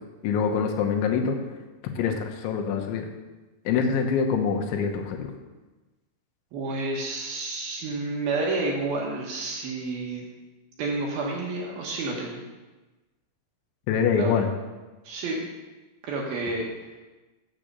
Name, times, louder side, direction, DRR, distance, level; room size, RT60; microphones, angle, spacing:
voice 1, 0.2-1.4 2.0-3.1 3.7-5.3 13.9-14.5, left 6 dB, 80° left, 3 dB, 3.3 m, -25 dB
voice 2, 6.5-10.3 10.8-12.5 14.1-14.3 15.0-15.4 16.0-16.7, right 3 dB, 70° right, -1 dB, 2.7 m, -30 dB
7.6 x 7.5 x 6.6 m, 1.2 s
omnidirectional pair, 5.3 m